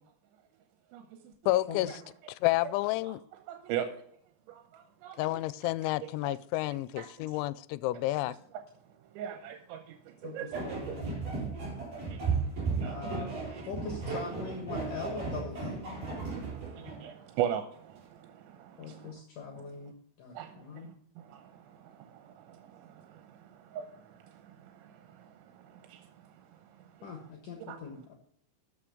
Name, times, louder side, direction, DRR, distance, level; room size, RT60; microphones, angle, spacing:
voice 1, 0.9-1.3 3.1-3.2 3.5-3.9 4.5-5.2 6.2-6.3 6.7-7.1 9.1-11.0 12.1-12.3 12.8-13.3 16.1-19.1 19.8-19.9 20.3-27.0 27.7-27.8, right 10 dB, 85° right, 6 dB, 3.2 m, -41 dB
voice 2, 1.5-1.9 2.4-3.2 5.2-8.3, left 17 dB, 90° left, 18 dB, 2.9 m, -30 dB
voice 3, 10.2-11.1 12.8-13.3 13.6-15.8 18.8-20.9 27.0-28.1, left 5 dB, 60° left, 3 dB, 2.4 m, -42 dB
sound 1, 10.5-17.0, right 4 dB, 45° right, 5.5 m, -35 dB
13.5 x 6.5 x 5.0 m, 0.66 s
omnidirectional pair, 5.3 m